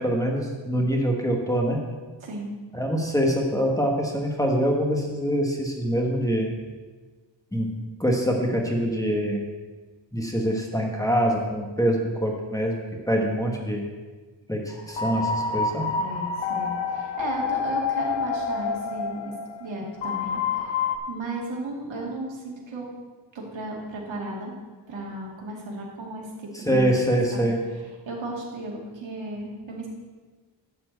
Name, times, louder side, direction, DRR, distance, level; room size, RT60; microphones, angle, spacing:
voice 1, 0.0-1.8 2.7-6.5 7.5-7.7 8.0-9.4 10.1-12.8 13.1-13.8 14.5-14.6 14.9-15.9 26.7-27.6, equal, 5° left, 0 dB, 1.1 m, -24 dB
voice 2, 2.2-2.5 16.0-20.4 21.1-22.9 23.3-24.6 24.9-27.0 27.3-29.9, right 2 dB, 80° right, -2 dB, 2.5 m, -35 dB
sound 1, 14.7-21.0, left 5 dB, 75° left, 1.2 m, -28 dB
11.5 x 4.4 x 7.9 m, 1.3 s
wide cardioid pair, 180°, 45 cm